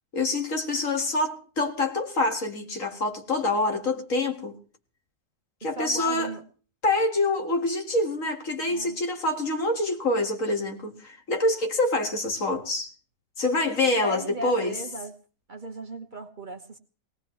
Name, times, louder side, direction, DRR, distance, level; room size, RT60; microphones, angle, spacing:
voice 1, 0.1-4.5 5.6-6.3 6.8-12.9 13.4-14.7, left 2 dB, 65° left, 2.3 m, -26 dB
voice 2, 5.6-6.4 8.7-9.0 13.9-15.1 15.5-16.8, right 2 dB, 35° right, 1.2 m, -36 dB
21.5 x 18.0 x 3.2 m
omnidirectional pair, 1.5 m